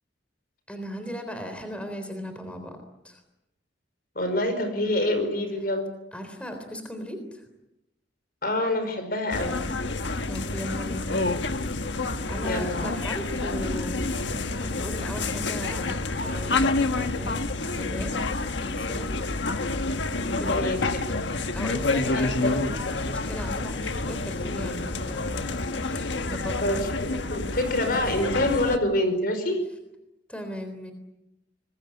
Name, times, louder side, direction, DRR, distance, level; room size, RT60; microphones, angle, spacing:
voice 1, 0.7-2.8 3.0-3.2 6.1-7.4 10.2-11.3 12.1-17.4 17.7-19.2 20.3-20.6 21.5-26.8 30.3-30.9, equal, 5° left, 7 dB, 3.7 m, -37 dB
voice 2, 4.2-5.9 8.4-9.6 12.4-12.9 20.5-20.8 22.1-22.5 26.6-29.6, left 1 dB, 55° left, 8 dB, 5.3 m, -26 dB
sound 1, 9.3-28.8, left 3 dB, 75° left, 1.4 m, -28 dB
25.5 x 21.5 x 8.6 m, 0.89 s
head